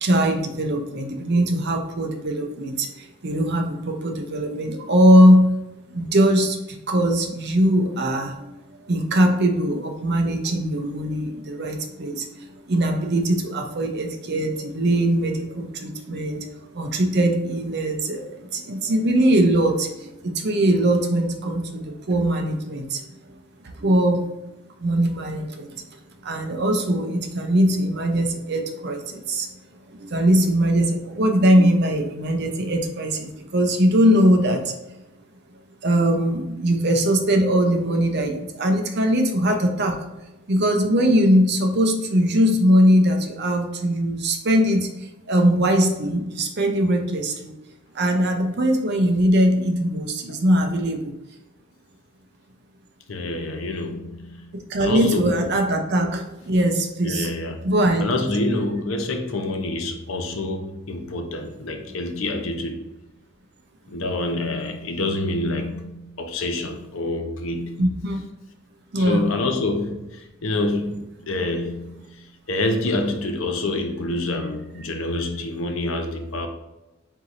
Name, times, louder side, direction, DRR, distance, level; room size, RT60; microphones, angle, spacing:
voice 1, 0.0-5.5 5.9-8.6 8.9-23.0 23.8-24.3 24.8-25.7 26.2-29.5 29.9-34.7 35.8-40.0 40.5-44.9 45.3-47.5 47.9-51.1 54.7-57.3 57.6-58.0 67.8-68.2 68.9-69.2, equal, 50° right, 4 dB, 0.6 m, -21 dB
voice 2, 53.1-55.4 57.0-62.9 63.9-67.9 69.0-76.5, left 2 dB, 70° left, 5 dB, 0.6 m, -27 dB
4.6 x 4.0 x 2.5 m, 0.98 s
head